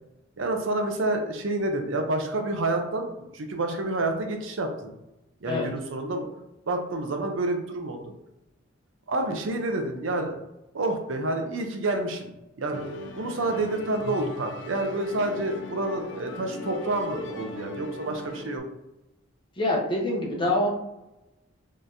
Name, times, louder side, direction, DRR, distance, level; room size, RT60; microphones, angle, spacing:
voice 1, 0.4-4.9 5.4-6.3 6.7-8.0 9.1-10.4 10.7-12.3 12.6-12.8 13.2-18.6, right 2 dB, 75° right, 4 dB, 0.6 m, -28 dB
Musical instrument, 12.7-18.6, left 1 dB, 65° left, 0.4 m, -38 dB
voice 2, 19.6-20.7, left 1 dB, 25° left, -2 dB, 0.8 m, -25 dB
4.1 x 3.1 x 2.6 m, 0.93 s
head